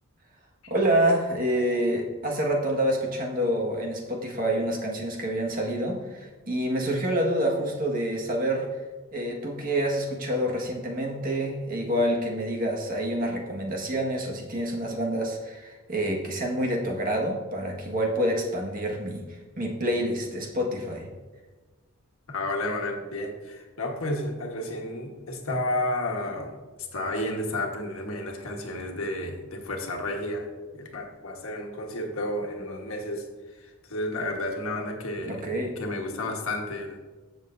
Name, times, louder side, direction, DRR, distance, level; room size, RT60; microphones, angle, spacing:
voice 1, 0.7-8.7 9.1-19.2 19.6-21.1 35.3-35.7, right 1 dB, 40° right, 0 dB, 1.6 m, -27 dB
voice 2, 22.3-26.6 26.9-37.0, left 1 dB, 75° left, 2 dB, 1.4 m, -32 dB
15.0 x 6.7 x 2.7 m, 1.3 s
head